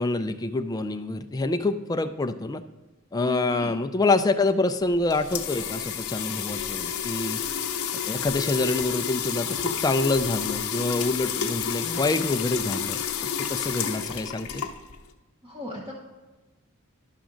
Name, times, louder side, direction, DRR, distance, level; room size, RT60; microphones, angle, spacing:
voice 1, 0.0-2.6 3.1-7.4 8.1-14.7, left 2 dB, 15° left, 8 dB, 0.3 m, -26 dB
voice 2, 3.2-3.7 15.4-15.9, left 1 dB, 25° right, -3 dB, 0.9 m, -37 dB
sound 1, 4.8-15.1, left 7 dB, 80° left, 0.8 m, -30 dB
11.5 x 6.1 x 3.8 m, 1.2 s
head